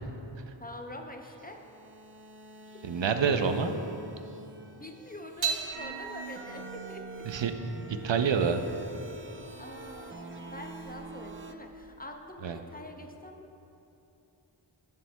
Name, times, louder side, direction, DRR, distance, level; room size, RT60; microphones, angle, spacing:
voice 1, 0.6-1.6 2.7-2.8 4.7-7.5 9.6-13.5, left 1 dB, 20° left, 3 dB, 0.6 m, -45 dB
sound 1, 1.2-11.5, right 2 dB, 25° right, 0.5 m, -48 dB
voice 2, 2.8-3.7 7.3-7.5 7.9-8.6 12.4-12.6, right 6 dB, 70° right, 7 dB, 0.6 m, -27 dB
sound 2, 5.4-12.0, right 6 dB, 90° right, 1.1 m, -40 dB
16.5 x 7.2 x 2.2 m, 2.9 s
wide cardioid pair, 90°, 46 cm